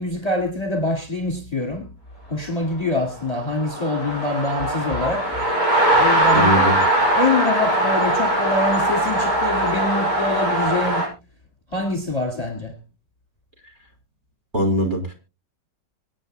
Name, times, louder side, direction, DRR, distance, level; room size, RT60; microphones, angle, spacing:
voice 1, 0.0-1.9 2.3-5.4 5.9-6.8 7.1-11.1 11.7-12.8, left 2 dB, 20° left, 2.2 m, -25 dB
sound 1, 3.4-11.1, right 1 dB, 55° right, 7.0 m, -20 dB
voice 2, 6.3-6.8 14.5-15.1, equal, 25° right, 3.7 m, -21 dB
25.5 x 9.2 x 2.2 m
omnidirectional pair, 1.9 m